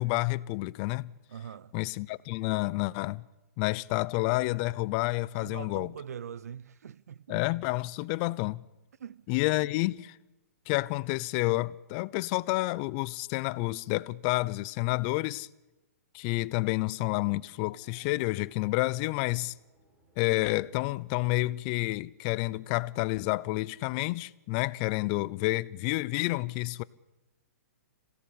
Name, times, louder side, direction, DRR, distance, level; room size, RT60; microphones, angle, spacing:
voice 1, 0.0-1.1 1.7-3.2 3.6-5.9 7.3-8.6 9.3-10.2 10.7-15.5 16.1-19.5 20.2-26.8, left 21 dB, 35° left, 0.7 m, -29 dB
voice 2, 1.3-1.7 5.4-7.4 9.0-9.3, right 8 dB, 80° right, 0.8 m, -43 dB
Race car auto racing / Accelerating revving vroom, 17.6-22.3, right 1 dB, 15° right, 6.5 m, -65 dB
27.0 x 17.0 x 8.6 m
hypercardioid pair, 145°, 8 cm